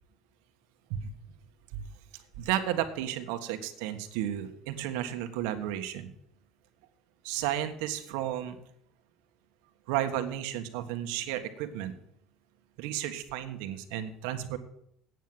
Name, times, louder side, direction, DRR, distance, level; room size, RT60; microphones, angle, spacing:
voice 1, 2.4-6.1 7.2-8.6 9.9-11.9 12.8-14.6, right 11 dB, 85° right, 8 dB, 1.4 m, -33 dB
9.2 x 8.4 x 7.8 m, 0.74 s
cardioid pair, 175°, 0 cm